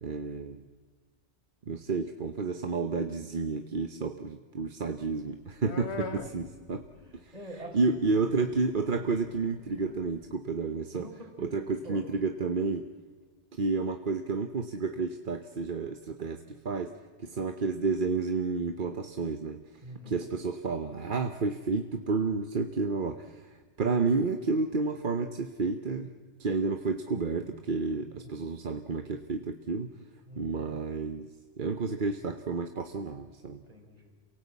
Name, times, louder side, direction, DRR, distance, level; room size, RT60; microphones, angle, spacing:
voice 1, 0.0-0.6 1.7-6.8 7.2-7.3 7.7-11.1 11.4-12.9 13.5-16.9 17.2-19.6 20.1-26.1 26.4-29.9 30.4-31.3 31.6-33.6, right 4 dB, 50° right, 7 dB, 1.1 m, -31 dB
sound 1, 5.0-7.5 7.8-10.2, left 4 dB, 75° left, 1.5 m, -43 dB
voice 2, 6.1-6.5 7.0-8.0 10.9-11.6 11.8-12.1 19.8-20.3 27.9-28.3 30.3-30.8 33.5-34.1, right 1 dB, 35° right, 3 dB, 4.2 m, -46 dB
27.5 x 17.5 x 8.4 m, 1.4 s
omnidirectional pair, 1.1 m